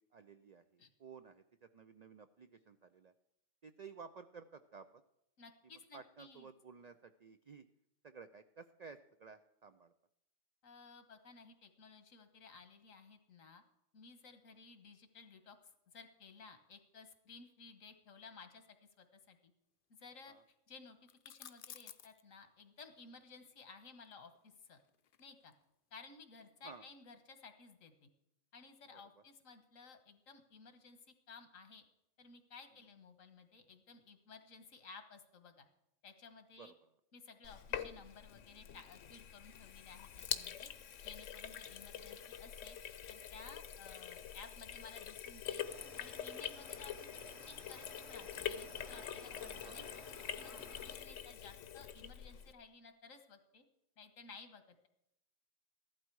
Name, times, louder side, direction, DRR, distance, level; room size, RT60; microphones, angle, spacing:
voice 1, 0.0-3.1 3.6-5.0 5.9-7.7 8.0-9.9 20.3-20.4 26.6-26.9 28.9-29.0 36.6-36.9 41.5-41.6 49.5-49.8, right 5 dB, 80° right, 10 dB, 0.3 m, -55 dB
voice 2, 5.4-6.5 10.6-13.6 13.9-15.6 15.9-18.7 19.0-19.5 19.9-20.3 20.7-24.8 25.2-25.5 25.9-28.1 28.5-31.0 31.3-31.8 32.2-35.7 36.0-36.7 37.1-40.7 41.0-47.1 47.4-49.9 50.2-50.6 50.8-53.6 54.0-54.9, left 4 dB, 90° left, 8 dB, 1.7 m, -56 dB
sound 1, 21.1-22.2 24.0-25.6, left 9 dB, 55° left, 0.6 m, -54 dB
Sink (filling or washing), 37.4-52.5, left 9 dB, 75° left, 1.1 m, -45 dB
sound 2, 45.6-51.0, right 1 dB, 60° right, 2.3 m, -57 dB
14.5 x 12.0 x 4.7 m, 0.85 s
omnidirectional pair, 1.3 m